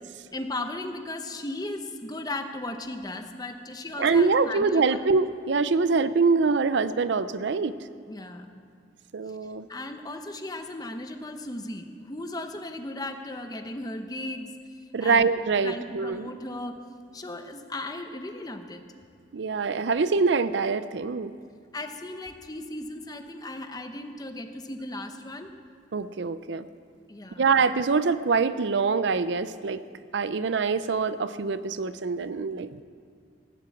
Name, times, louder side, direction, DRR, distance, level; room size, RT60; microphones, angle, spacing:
voice 1, 0.3-5.0 8.1-8.5 9.4-14.5 15.0-15.3 15.6-16.8 17.1-18.8 21.7-25.5 27.1-27.5, left 2 dB, 20° left, 6 dB, 0.9 m, -36 dB
voice 2, 4.0-7.7 9.1-9.7 14.9-16.3 19.3-21.3 25.9-26.7 27.4-29.8 30.1-32.7, right 4 dB, 65° right, 14 dB, 0.5 m, -24 dB
17.5 x 7.7 x 8.4 m, 2.2 s
head